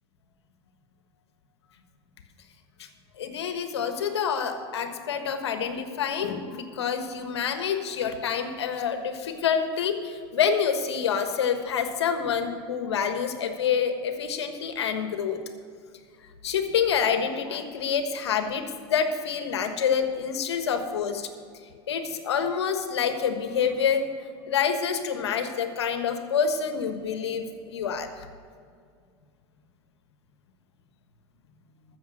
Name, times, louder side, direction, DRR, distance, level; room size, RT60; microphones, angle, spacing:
voice 1, 3.2-15.4 16.4-21.3 21.9-24.0 24.5-28.3, left 7 dB, 90° left, 7 dB, 1.4 m, -27 dB
14.0 x 7.1 x 6.4 m, 2.2 s
hypercardioid pair, 100°, 14 cm